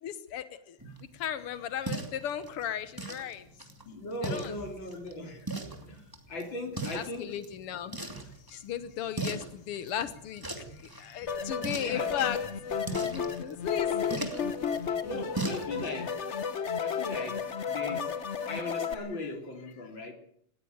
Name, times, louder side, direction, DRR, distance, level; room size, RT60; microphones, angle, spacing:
voice 1, 0.0-0.8 1.1-3.5 4.3-4.5 6.9-8.0 8.5-14.3 16.6-16.8, left 10 dB, 90° left, 13 dB, 2.1 m, -36 dB
sound 1, 0.8-16.0, right 2 dB, 10° right, 2.5 m, -41 dB
voice 2, 3.9-5.5 5.9-7.3 11.8-12.3 14.2-14.4 15.0-16.2 16.8-18.1 18.5-20.1, left 2 dB, 60° left, 5 dB, 4.0 m, -38 dB
sound 2, 11.3-18.9, left 7 dB, 40° left, 1.1 m, -33 dB
19.0 x 15.5 x 9.3 m, 0.68 s
omnidirectional pair, 2.4 m